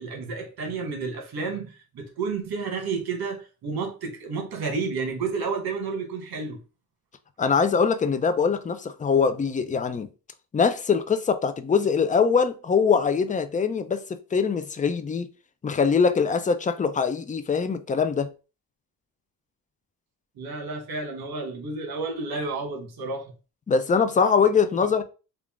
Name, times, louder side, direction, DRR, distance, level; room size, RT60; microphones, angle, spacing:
voice 1, 0.0-6.6 20.4-23.3, right 4 dB, 75° right, 1.3 m, -31 dB
voice 2, 7.4-10.1 10.5-15.3 15.6-18.3 23.7-25.0, left 5 dB, 20° left, 0.4 m, -23 dB
3.6 x 2.5 x 3.5 m
cardioid pair, 105°, 38 cm